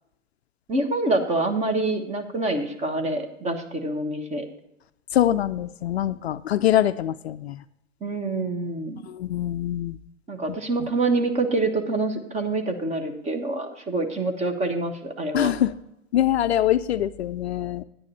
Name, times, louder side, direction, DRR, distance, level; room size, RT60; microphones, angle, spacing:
voice 1, 0.7-4.4 8.0-9.0 10.3-15.5, right 2 dB, 20° right, 6 dB, 1.4 m, -26 dB
voice 2, 5.1-7.6 9.1-10.0 15.3-15.7 16.1-17.8, left 12 dB, 55° left, 12 dB, 0.5 m, -23 dB
10.0 x 9.7 x 4.1 m, 0.82 s
figure-of-eight pair, 110°, 37 cm